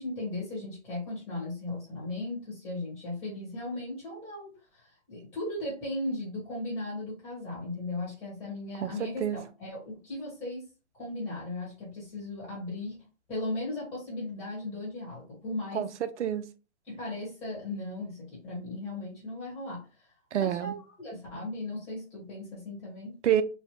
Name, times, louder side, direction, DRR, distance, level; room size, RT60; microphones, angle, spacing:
voice 1, 0.0-10.7 10.9-13.0 13.3-15.9 16.8-20.1 20.4-23.1, left 2 dB, 5° left, 0.9 m, -37 dB
voice 2, 8.8-9.4 15.7-16.4 20.3-20.7 23.2-23.4, right 10 dB, 75° right, 0.6 m, -28 dB
3.1 x 2.0 x 2.9 m
hypercardioid pair, 150°, 35 cm